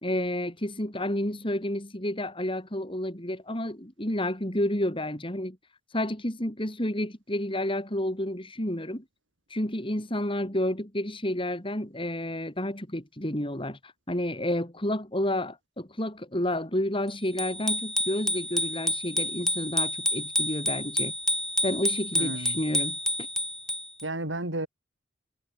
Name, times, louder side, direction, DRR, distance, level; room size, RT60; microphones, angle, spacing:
voice 1, 0.0-5.6 5.9-9.0 9.5-21.1 21.6-23.3, left 1 dB, 30° left, 4.8 m, -30 dB
Bicycle bell, 17.4-24.0, left 1 dB, 5° left, 4.2 m, -29 dB
voice 2, 22.2-22.6 24.0-24.7, right 1 dB, 90° right, 5.5 m, -32 dB
head